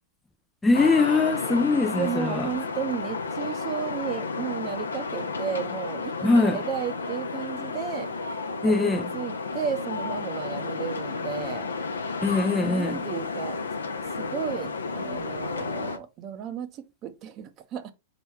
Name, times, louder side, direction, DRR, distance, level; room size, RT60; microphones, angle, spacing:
voice 1, 0.6-2.5 6.2-6.6 8.6-9.1 12.2-13.0, left 3 dB, 10° left, 0.3 m, -22 dB
sound 1, 0.7-16.0, left 4 dB, 80° left, 0.6 m, -32 dB
voice 2, 2.0-6.1 6.4-8.1 8.6-11.7 12.6-13.6 14.2-16.7 17.0-17.9, right 8 dB, 35° right, 0.6 m, -33 dB
4.4 x 2.9 x 3.2 m
figure-of-eight pair, 100°, 0 cm